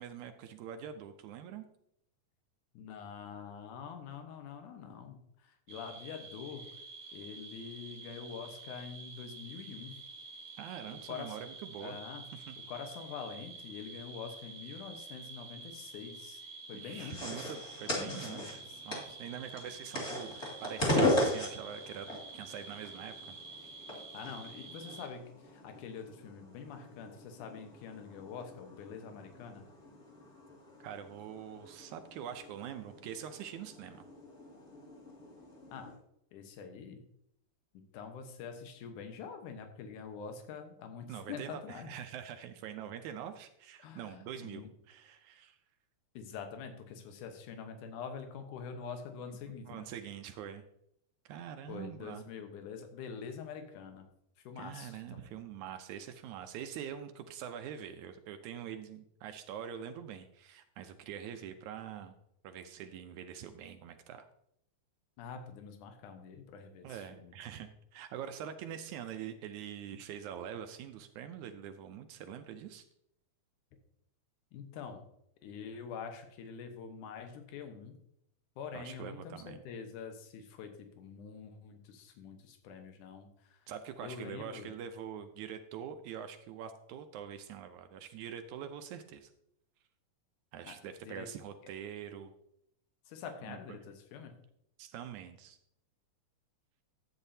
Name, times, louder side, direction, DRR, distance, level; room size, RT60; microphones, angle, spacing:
voice 1, 0.0-1.7 10.6-12.0 12.3-12.6 16.7-23.4 30.8-34.0 41.1-45.6 49.6-50.6 51.3-52.2 54.6-62.1 62.4-64.3 66.8-72.9 78.7-79.6 83.7-89.3 90.5-92.3 93.4-93.6 94.8-95.6, right 9 dB, 75° right, 8 dB, 1.9 m, -44 dB
voice 2, 2.7-6.7 7.1-10.0 10.9-11.4 11.8-12.2 12.7-16.4 16.7-17.5 17.9-18.8 24.1-29.6 35.7-35.9 36.3-37.0 37.9-41.9 43.8-44.7 46.1-49.9 51.7-54.1 54.4-55.4 65.2-67.3 74.5-75.0 75.4-78.0 78.6-83.7 84.0-84.7 90.7-90.8 91.0-91.3 93.1-94.3, left 6 dB, 80° left, 6 dB, 2.6 m, -45 dB
sound 1, 5.7-25.1, right 3 dB, 55° right, 0.9 m, -49 dB
sound 2, 17.0-35.9, left 1 dB, 20° left, 2.6 m, -38 dB
12.0 x 8.8 x 2.7 m, 0.74 s
omnidirectional pair, 3.6 m